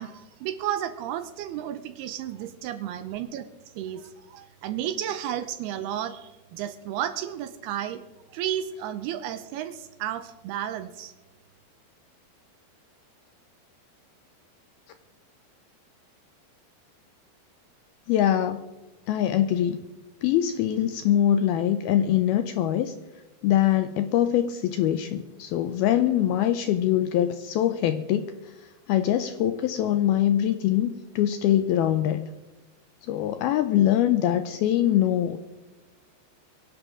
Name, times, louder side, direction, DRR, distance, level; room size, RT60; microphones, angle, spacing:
voice 1, 0.0-3.5 3.8-8.0 8.3-11.1, right 10 dB, 80° right, 10 dB, 2.5 m, -32 dB
voice 2, 18.1-18.6 19.1-19.8 20.2-22.9 23.4-28.4 28.9-32.3 33.1-35.4, left 11 dB, 85° left, 9 dB, 2.2 m, -23 dB
23.5 x 11.5 x 3.7 m, 1.1 s
omnidirectional pair, 5.0 m